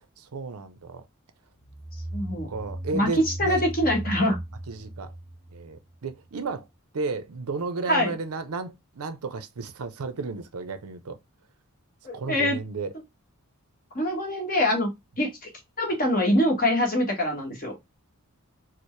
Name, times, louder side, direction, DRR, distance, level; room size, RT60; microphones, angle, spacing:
voice 1, 0.2-1.0 2.5-3.7 4.7-5.1 5.5-6.7 6.9-11.2 12.1-12.9, right 3 dB, 75° right, 0.5 m, -33 dB
sound 1, 1.5-6.1, right 1 dB, 5° right, 1.1 m, -37 dB
voice 2, 2.1-2.5 2.9-3.1 3.4-4.4 7.9-8.1 12.0-12.6 13.9-15.5 15.8-17.7, left 1 dB, 40° left, 1.2 m, -24 dB
4.3 x 2.1 x 3.1 m
head